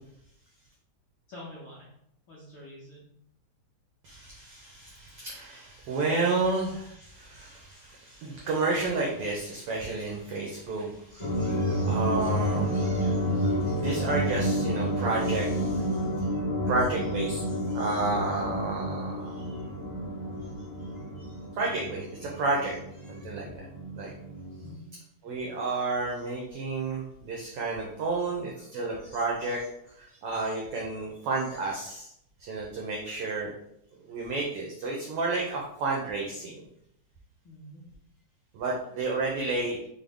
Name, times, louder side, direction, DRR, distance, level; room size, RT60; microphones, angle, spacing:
voice 1, 1.3-1.9 2.3-3.1 24.6-24.9 37.4-37.8, left 1 dB, 75° left, -7 dB, 1.1 m, -46 dB
voice 2, 4.0-15.9 16.2-16.3 16.7-19.4 21.2-21.3 21.6-22.8 23.0-23.6 23.9-24.1 25.2-29.7 30.0-32.1 32.4-33.5 34.0-36.6 38.5-39.9, right 3 dB, 85° right, -2 dB, 1.3 m, -31 dB
sound 1, 11.2-24.7, equal, 35° left, 0.4 m, -30 dB
4.8 x 2.1 x 3.4 m, 0.76 s
omnidirectional pair, 3.3 m